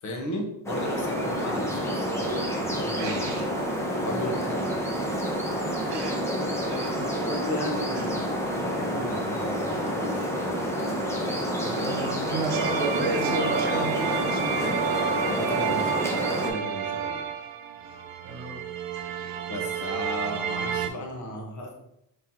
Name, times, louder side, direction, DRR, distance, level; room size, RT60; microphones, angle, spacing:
voice 1, 0.0-3.3 4.0-4.7 7.3-10.7 15.3-16.0 16.4-17.3 19.5-21.7, left 1 dB, 45° left, 1 dB, 1.1 m, -35 dB
sound 1, 0.7-16.5, equal, 5° left, 0.7 m, -29 dB
voice 2, 3.0-3.5 5.9-6.1 6.6-7.3 7.9-8.1 11.6-14.7 17.8-18.0 18.2-18.6 18.9-19.4, right 2 dB, 75° right, 2 dB, 1.3 m, -33 dB
sound 2, 12.5-20.9, right 7 dB, 55° right, 0.5 m, -30 dB
4.3 x 3.1 x 3.8 m, 0.82 s
cardioid pair, 145°, 42 cm